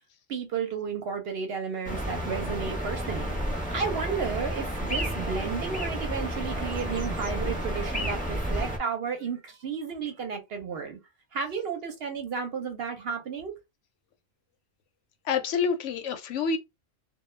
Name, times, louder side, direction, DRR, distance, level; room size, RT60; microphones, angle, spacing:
voice 1, 0.3-3.3 3.7-11.0 11.3-13.5, right 6 dB, 60° right, 0.7 m, -33 dB
sound 1, 1.8-8.8, equal, 10° left, 0.4 m, -31 dB
voice 2, 15.2-16.6, left 5 dB, 75° left, 0.9 m, -27 dB
2.2 x 2.1 x 3.1 m
omnidirectional pair, 1.3 m